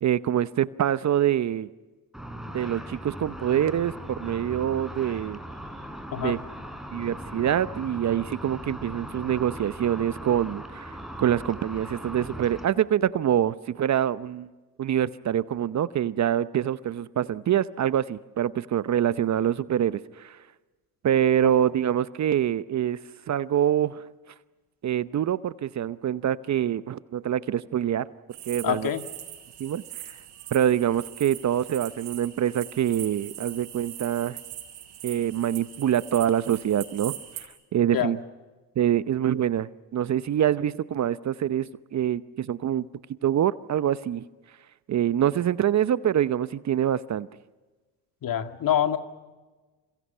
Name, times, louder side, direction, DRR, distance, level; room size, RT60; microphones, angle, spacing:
voice 1, 0.0-1.7 2.5-5.4 6.2-6.4 6.9-14.5 14.8-20.4 21.0-23.0 23.3-24.0 24.8-28.1 28.5-28.9 29.6-29.8 30.5-34.4 35.0-37.5 37.7-38.2 38.8-42.9 43.2-44.2 44.9-47.3, right 10 dB, 40° right, 15 dB, 0.9 m, -25 dB
Car / Traffic noise roadway noise / Engine, 2.1-12.7, equal, ahead, 4.1 m, -39 dB
sound 1, 28.3-37.5, right 12 dB, 65° right, 5.9 m, -41 dB
voice 2, 28.6-29.0 37.9-38.2 48.2-49.0, left 10 dB, 45° left, 7 dB, 2.1 m, -25 dB
29.0 x 27.0 x 5.6 m, 1.3 s
hypercardioid pair, 65°, 45 cm